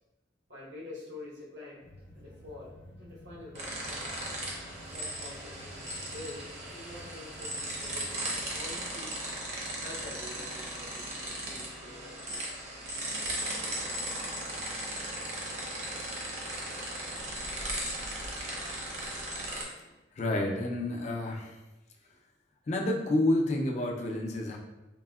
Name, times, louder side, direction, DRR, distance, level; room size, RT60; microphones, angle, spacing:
voice 1, 0.5-1.9 2.1-4.1 4.9-9.1 9.8-12.5, left 2 dB, 85° right, -6 dB, 0.9 m, -47 dB
sound 1, 1.8-8.6, left 1 dB, 85° left, 0.6 m, -51 dB
sound 2, 3.5-19.6, right 1 dB, 40° right, 0.6 m, -37 dB
voice 2, 20.2-21.6 22.7-24.6, left 1 dB, 40° left, 1 dB, 0.4 m, -29 dB
3.6 x 2.0 x 2.3 m, 1.0 s
head